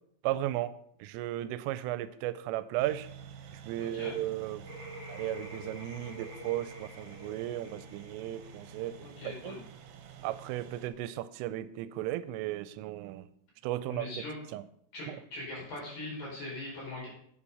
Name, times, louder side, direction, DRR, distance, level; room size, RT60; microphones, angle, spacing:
voice 1, 0.2-0.7 1.0-3.1 3.7-4.6 5.1-9.0 9.2-9.6 10.2-13.3 13.6-14.1 14.5-14.6 15.1-15.2, right 14 dB, 85° right, 14 dB, 3.1 m, -35 dB
sound 1, 2.8-10.9, right 5 dB, 70° right, 2.8 m, -49 dB
voice 2, 3.8-4.1 9.0-9.6 13.9-14.3 14.9-17.1, left 2 dB, 45° left, -4 dB, 6.4 m, -41 dB
sound 2, 4.6-9.3, equal, 5° left, 5.1 m, -48 dB
9.8 x 8.6 x 5.5 m, 0.68 s
omnidirectional pair, 5.7 m